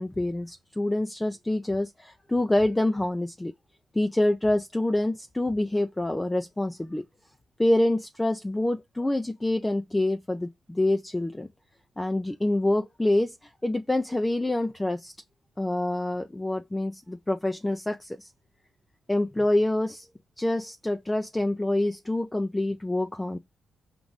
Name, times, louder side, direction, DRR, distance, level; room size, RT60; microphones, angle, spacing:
voice 1, 0.0-3.5 3.9-7.0 7.6-11.5 12.0-13.3 13.6-15.1 15.6-18.3 19.1-20.1 20.4-23.4, left 1 dB, 15° left, 0.5 m, -26 dB
5.1 x 2.6 x 3.1 m
supercardioid pair, 65°, 0 cm